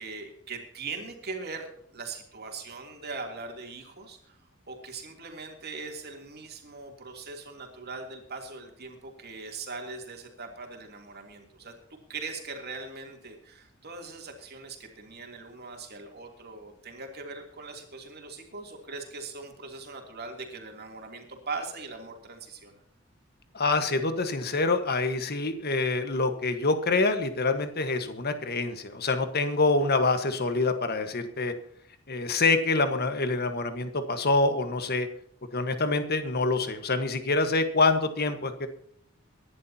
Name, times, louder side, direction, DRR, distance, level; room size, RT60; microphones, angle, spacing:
voice 1, 0.0-4.4 4.7-11.7 12.1-22.8, right 4 dB, 50° right, 2 dB, 3.1 m, -40 dB
voice 2, 23.5-31.5 32.1-35.1 35.5-38.7, left 3 dB, 50° left, 8 dB, 1.5 m, -26 dB
24.0 x 11.0 x 2.9 m, 0.70 s
head